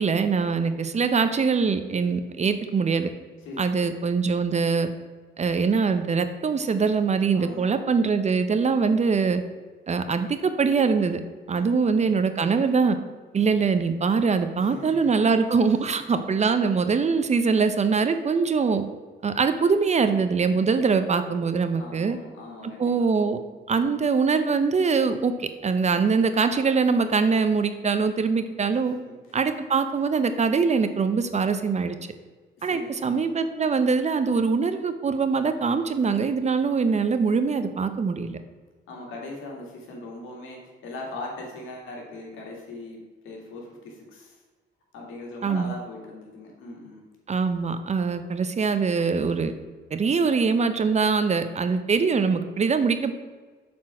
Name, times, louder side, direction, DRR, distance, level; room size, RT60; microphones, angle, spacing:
voice 1, 0.0-3.1 3.6-4.9 5.4-9.4 9.9-11.2 11.5-13.0 13.3-18.8 19.2-22.2 22.8-23.4 23.7-29.0 29.3-32.0 32.6-38.4 45.4-45.7 47.3-49.5 49.9-53.1, right 5 dB, 35° right, 9 dB, 0.7 m, -23 dB
voice 2, 3.4-4.0 7.3-7.9 11.5-12.2 14.6-15.1 21.8-23.3 28.7-29.4 32.6-32.9 38.9-43.0 43.2-44.4 44.9-47.1, left 2 dB, 85° left, 0 dB, 2.1 m, -40 dB
7.5 x 4.4 x 5.9 m, 1.4 s
cardioid pair, 90°, 20 cm